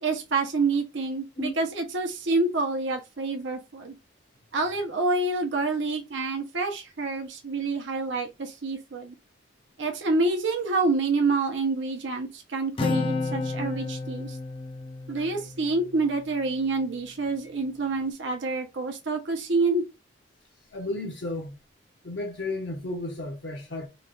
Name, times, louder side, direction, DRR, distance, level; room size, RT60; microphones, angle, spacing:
voice 1, 0.0-4.0 4.5-9.1 9.8-14.4 15.1-19.8, right 3 dB, 80° right, 0.7 m, -27 dB
Acoustic guitar, 12.8-16.4, left 3 dB, 30° left, 0.3 m, -31 dB
voice 2, 20.7-21.6 22.0-23.9, left 2 dB, 65° left, 0.7 m, -33 dB
3.1 x 2.2 x 3.7 m
head